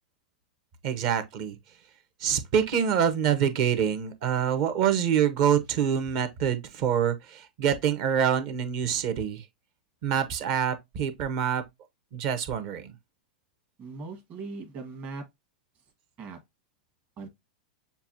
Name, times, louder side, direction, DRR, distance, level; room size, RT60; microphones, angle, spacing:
voice 1, 0.8-1.5 2.2-9.4 10.0-11.6 12.1-12.9, right 8 dB, 55° right, 1.0 m, -26 dB
voice 2, 13.8-15.2 16.2-16.4 17.2-17.3, right 3 dB, 35° right, 1.3 m, -39 dB
6.9 x 2.4 x 2.6 m
hypercardioid pair, 100°, 4 cm